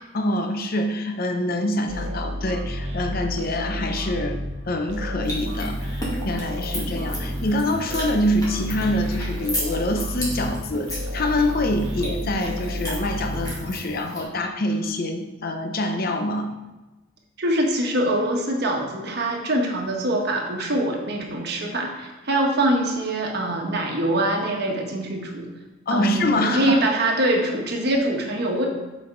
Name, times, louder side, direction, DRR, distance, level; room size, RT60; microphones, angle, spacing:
voice 1, 0.1-4.4 4.7-16.5 25.9-26.8, left 1 dB, 50° left, 5 dB, 0.6 m, -25 dB
sound 1, 1.9-14.1, equal, 80° right, 1.1 m, -31 dB
sound 2, 5.2-14.2, equal, 20° left, 1.9 m, -34 dB
voice 2, 17.4-25.5 25.9-28.7, right 1 dB, 55° right, 1 dB, 1.3 m, -24 dB
7.8 x 5.2 x 3.8 m, 1.1 s
head